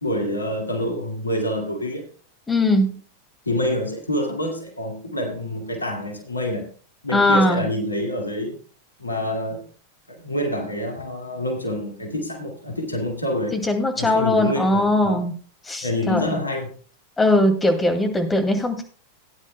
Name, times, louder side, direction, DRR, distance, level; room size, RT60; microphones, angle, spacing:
voice 1, 0.0-2.1 3.5-6.7 7.0-8.6 9.0-9.7 10.1-13.6 14.0-15.3 15.8-16.7, left 1 dB, 80° left, 3 dB, 2.0 m, -27 dB
voice 2, 2.5-3.0 7.1-7.7 13.5-15.3 15.7-16.4 17.2-18.8, left 1 dB, 10° left, 5 dB, 2.2 m, -20 dB
17.5 x 9.8 x 2.2 m, 0.39 s
figure-of-eight pair, 90°, 0 cm